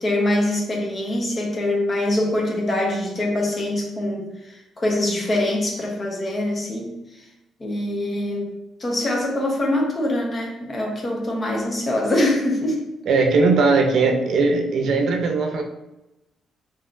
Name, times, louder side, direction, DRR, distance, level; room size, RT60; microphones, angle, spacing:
voice 1, 0.0-7.0 7.6-8.5 8.8-12.8, left 1 dB, 30° left, 0 dB, 1.0 m, -24 dB
voice 2, 13.1-15.6, right 4 dB, 70° right, 3 dB, 0.6 m, -19 dB
4.7 x 3.0 x 2.5 m, 0.97 s
cardioid pair, 90°, 0 cm